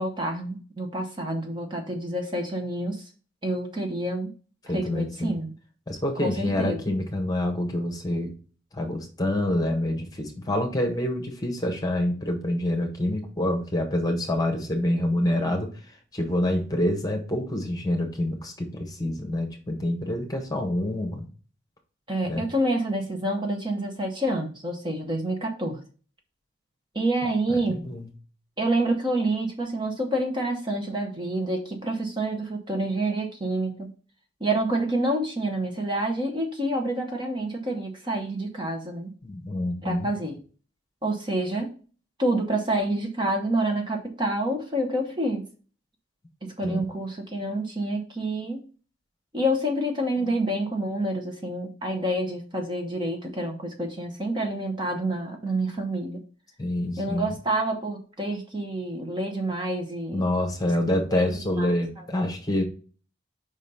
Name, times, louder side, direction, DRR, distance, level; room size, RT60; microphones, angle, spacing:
voice 1, 0.0-3.1 3.4-4.3 4.7-5.5 6.2-6.8 22.1-25.8 26.9-27.8 28.6-33.9 34.4-39.1 39.8-40.4 41.0-41.8 42.2-45.5 46.4-48.6 49.3-56.2 57.0-60.3 60.9-61.3 61.6-61.7, right 1 dB, 25° right, 2 dB, 1.0 m, -28 dB
voice 2, 4.7-5.4 5.9-8.3 8.7-21.3 22.3-22.4 27.5-28.1 39.2-40.1 46.6-46.8 50.2-50.3 56.6-57.3 60.1-62.6, left 1 dB, 20° left, 4 dB, 1.2 m, -27 dB
5.2 x 4.1 x 5.4 m, 0.39 s
head